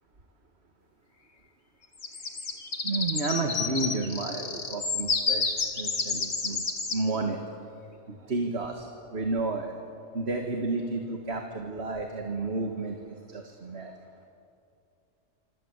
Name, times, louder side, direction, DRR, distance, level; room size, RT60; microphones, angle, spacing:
sound 1, 2.0-7.0, left 4 dB, 80° left, 2.6 m, -30 dB
voice 1, 2.8-6.7 6.9-7.4 8.1-8.9 9.1-9.7 10.1-13.9, right 3 dB, 60° right, 3 dB, 2.0 m, -31 dB
26.5 x 25.5 x 8.2 m, 2.6 s
omnidirectional pair, 1.3 m